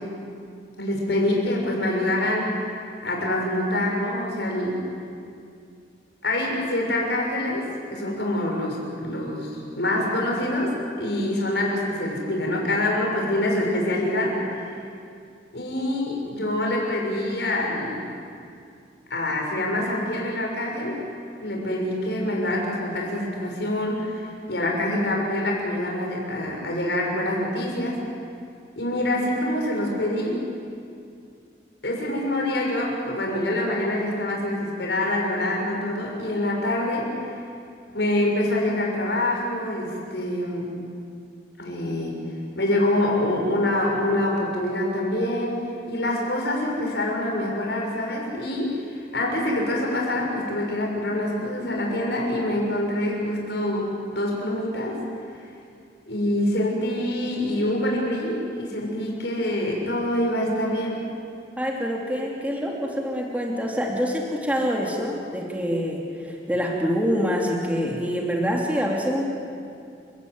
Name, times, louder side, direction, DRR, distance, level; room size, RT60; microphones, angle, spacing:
voice 1, 0.8-2.7 3.0-4.9 6.2-14.7 15.5-18.0 19.1-21.1 21.4-28.0 28.7-30.4 31.8-37.1 37.9-40.7 41.6-42.1 42.5-45.6 45.9-54.9 56.1-61.0, left 1 dB, 75° left, -1 dB, 6.8 m, -25 dB
voice 2, 61.6-69.2, equal, 10° right, -1 dB, 2.8 m, -26 dB
30.0 x 17.0 x 9.5 m, 2.4 s
head